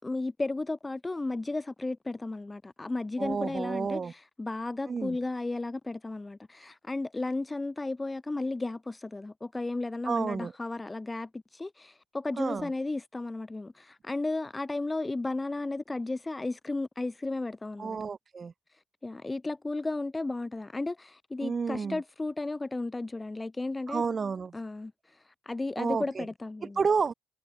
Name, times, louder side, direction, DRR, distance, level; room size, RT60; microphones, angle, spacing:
voice 1, 0.0-18.0 18.7-24.0 24.5-26.8, left 2 dB, 20° left, 3.2 m, -34 dB
voice 2, 3.2-4.1 4.9-5.2 10.1-10.5 12.4-12.7 17.8-18.5 21.4-22.0 23.9-24.5 25.8-26.2 26.8-27.1, right 5 dB, 40° right, 0.9 m, -30 dB
cardioid pair, 90°, 0 cm